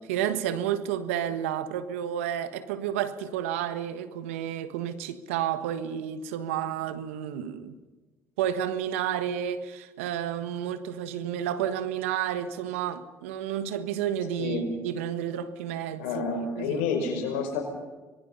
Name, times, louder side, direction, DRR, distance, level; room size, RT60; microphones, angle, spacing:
voice 1, 0.1-7.8 8.4-16.8, right 10 dB, 85° right, 1.4 m, -31 dB
voice 2, 16.0-17.6, left 5 dB, 80° left, 5.4 m, -29 dB
25.5 x 21.5 x 5.5 m
hypercardioid pair, 60°, 7 cm